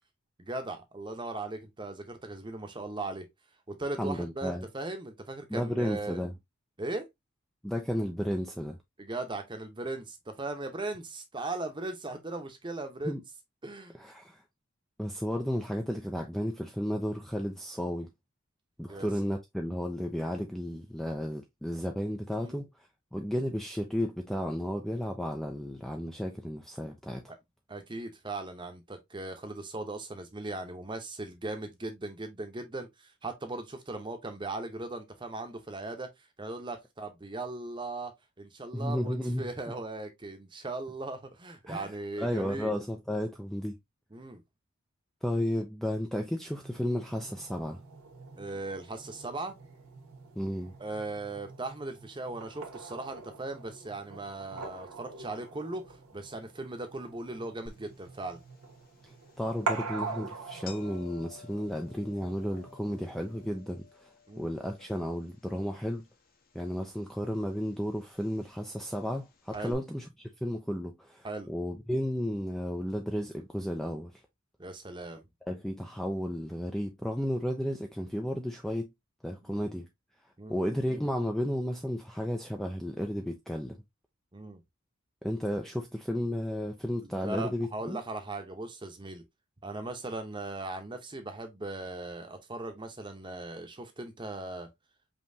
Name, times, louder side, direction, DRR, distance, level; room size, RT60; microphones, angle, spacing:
voice 1, 0.4-3.3 3.7-6.2 6.8-7.1 9.0-13.2 13.6-14.0 18.9-19.1 22.4-22.6 27.3-27.4 27.7-36.1 36.4-38.1 38.4-42.7 44.1-44.4 48.4-49.6 50.8-58.4 64.3-64.5 69.5-69.8 71.2-71.5 74.6-75.3 79.5-79.6 80.4-80.6 84.3-84.6 87.2-89.2 89.6-94.7, right 2 dB, 20° right, 0.8 m, -38 dB
voice 2, 4.0-4.7 5.5-6.3 7.6-8.8 13.0-13.2 13.9-14.4 15.0-18.1 18.8-27.2 38.7-39.4 41.7-43.8 45.2-47.8 50.4-50.7 59.0-66.1 66.5-74.2 75.4-78.9 79.2-79.9 80.5-83.8 85.2-88.0, equal, ahead, 0.3 m, -33 dB
sound 1, 46.5-63.5, right 4 dB, 80° right, 1.3 m, -44 dB
sound 2, 57.7-69.7, left 5 dB, 40° left, 0.9 m, -55 dB
5.3 x 2.9 x 2.7 m
head